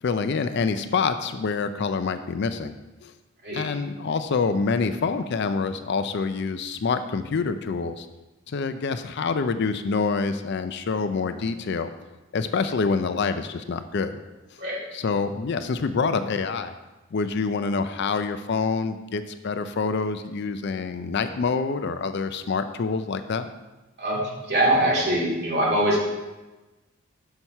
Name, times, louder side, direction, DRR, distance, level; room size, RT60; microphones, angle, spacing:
voice 1, 0.0-2.7 3.0-3.1 3.5-8.1 8.5-11.9 12.3-14.2 14.9-16.7 17.1-23.5, left 4 dB, 55° left, 10 dB, 0.4 m, -26 dB
voice 2, 24.0-26.0, right 1 dB, 50° right, -4 dB, 2.2 m, -23 dB
6.1 x 5.7 x 5.4 m, 1.1 s
head